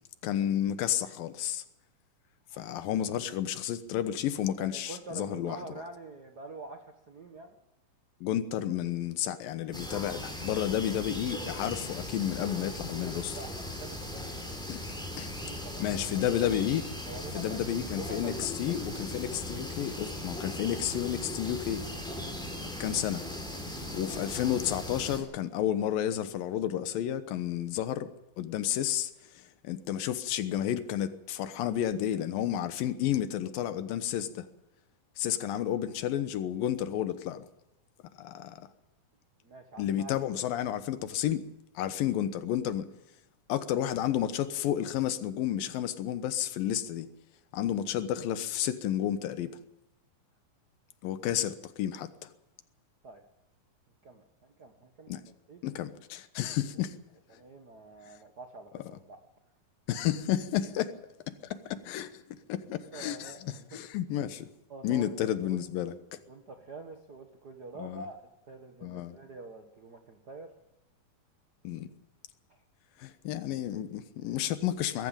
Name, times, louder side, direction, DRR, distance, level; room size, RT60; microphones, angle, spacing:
voice 1, 0.2-1.6 2.5-5.6 8.2-13.4 14.7-14.8 15.2-15.3 15.8-16.8 17.4-21.8 22.8-23.3 23.9-28.1 28.4-29.1 29.4-34.5 35.2-37.5 38.2-38.7 39.8-41.4 41.8-42.9 43.5-47.1 47.5-49.5 51.0-52.3 55.1-55.2 55.6-57.0 59.9-61.0 61.3-62.1 62.5-64.5 64.8-66.2 67.8-68.0 68.8-69.2 71.6-71.9 73.0-75.1, left 11 dB, 80° left, 2.8 m, -31 dB
voice 2, 2.5-2.9 4.6-7.5 13.0-16.2 17.1-17.6 18.0-18.8 39.4-40.1 53.0-53.2 54.0-55.2 55.5-55.6 57.3-59.2 62.9-63.8 64.7-65.1 65.4-65.5 66.3-70.5 72.5-72.6, right 2 dB, 60° right, 1.0 m, -46 dB
sound 1, 9.7-25.2, left 1 dB, ahead, 3.5 m, -38 dB
22.0 x 14.0 x 8.8 m
omnidirectional pair, 4.0 m